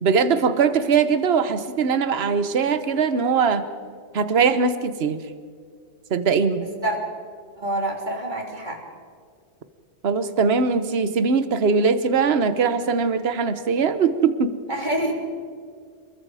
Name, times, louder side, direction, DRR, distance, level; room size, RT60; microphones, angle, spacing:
voice 1, 0.0-3.6 4.1-5.2 6.1-6.7 10.0-14.5, right 5 dB, 60° right, 11 dB, 1.3 m, -21 dB
voice 2, 7.6-8.8 14.7-15.1, right 1 dB, 40° right, 1 dB, 3.5 m, -26 dB
29.0 x 21.5 x 4.9 m, 2.1 s
omnidirectional pair, 1.2 m